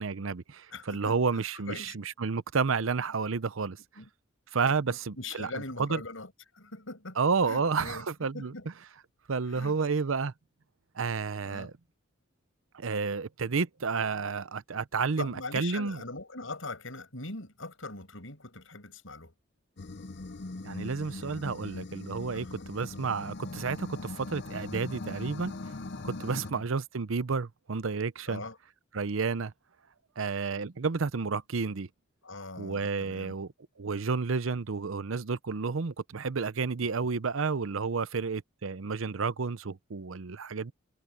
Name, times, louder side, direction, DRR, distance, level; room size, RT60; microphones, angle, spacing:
voice 1, 0.0-3.8 4.5-6.0 7.2-8.5 9.3-10.3 10.9-11.7 12.7-16.0 20.6-25.5 26.0-28.4 28.9-29.5 30.2-31.9 32.6-33.5 33.8-40.7, right 4 dB, 80° right, 0.7 m, -31 dB
voice 2, 0.7-1.2 1.7-2.0 4.0-4.1 4.9-6.3 6.6-7.2 7.5-8.1 8.3-8.7 9.5-9.8 11.4-11.7 15.2-19.3 22.3-22.7 26.4-26.6 28.3-28.6 32.2-33.3, left 3 dB, 75° left, 7.3 m, -41 dB
sound 1, 19.8-26.5, left 2 dB, 60° left, 0.7 m, -40 dB
head